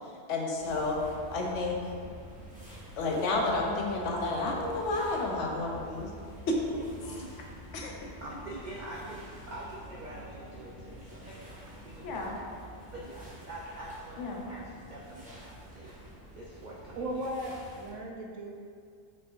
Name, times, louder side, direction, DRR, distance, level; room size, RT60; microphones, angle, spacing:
voice 1, 0.3-1.0 1.3-1.9 3.0-6.1 6.5-6.6 7.7-8.1 12.0-12.4 14.2-14.4, left 2 dB, 70° left, -1 dB, 0.9 m, -31 dB
sound 1, 0.5-17.9, right 1 dB, 5° right, 0.7 m, -48 dB
voice 2, 6.7-7.4 7.9-12.5 12.9-15.9 16.3-17.3, right 1 dB, 70° right, -5 dB, 0.4 m, -45 dB
voice 3, 17.0-18.5, right 1 dB, 85° right, 0 dB, 1.0 m, -37 dB
4.7 x 3.6 x 2.4 m, 2.2 s
omnidirectional pair, 1.3 m